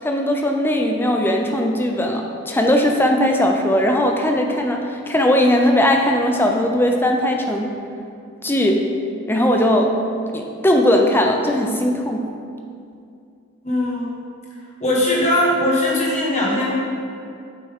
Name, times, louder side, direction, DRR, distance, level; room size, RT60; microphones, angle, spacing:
voice 1, 0.0-7.7 8.4-8.8 9.3-9.9 10.3-12.3, left 1 dB, 10° left, 2 dB, 0.5 m, -18 dB
voice 2, 13.6-14.1 14.8-16.7, left 1 dB, 30° left, -5 dB, 1.5 m, -19 dB
8.4 x 5.9 x 3.7 m, 2.5 s
head